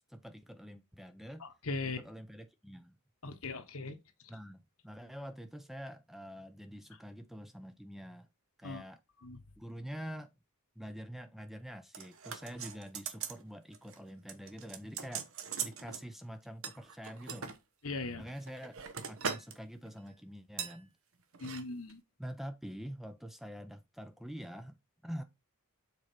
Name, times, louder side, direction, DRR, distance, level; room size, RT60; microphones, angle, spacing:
voice 1, 0.1-1.4 1.8-3.0 4.3-8.3 8.6-9.0 9.6-10.3 10.8-15.3 15.6-17.5 18.2-18.8 19.1-20.9 22.2-25.2, equal, ahead, 0.6 m, -46 dB
voice 2, 1.4-2.0 3.2-4.0 8.6-8.8 9.2-9.4 17.8-18.3 21.4-22.0, left 3 dB, 65° left, 1.3 m, -39 dB
sound 1, 11.9-13.4 13.7-14.0 14.3-16.0 16.6-17.6 18.2-19.6 19.8-20.1 20.6-20.8 21.3-21.6 21.9-22.0, right 7 dB, 65° right, 1.1 m, -41 dB
7.3 x 4.6 x 4.3 m
head